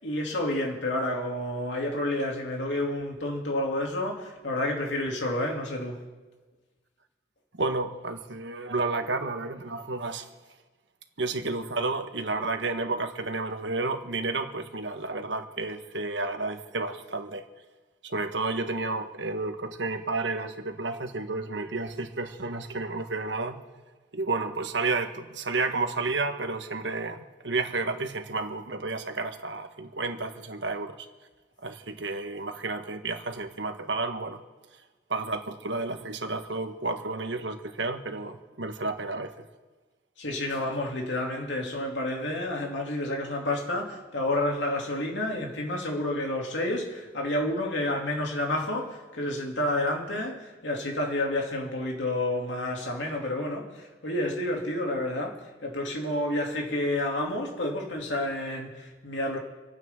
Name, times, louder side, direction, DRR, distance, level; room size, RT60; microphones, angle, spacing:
voice 1, 0.0-6.0 40.2-59.4, left 1 dB, 85° left, 2.8 m, -30 dB
voice 2, 7.5-10.3 11.2-17.4 18.0-23.6 24.1-31.1 31.6-34.4 35.1-39.5, right 3 dB, 80° right, 1.3 m, -31 dB
28.5 x 9.5 x 3.7 m
head